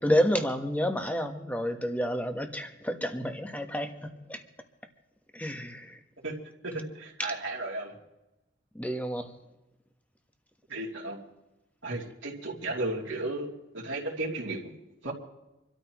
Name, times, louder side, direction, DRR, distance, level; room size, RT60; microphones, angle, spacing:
voice 1, 0.0-4.4 5.3-6.0 8.7-9.3, equal, 10° left, 5 dB, 1.2 m, -29 dB
voice 2, 6.6-8.0 10.7-11.2 11.8-13.5 13.7-14.7 15.0-15.1, right 2 dB, 80° right, -3 dB, 2.8 m, -34 dB
27.0 x 13.0 x 3.1 m, 0.99 s
head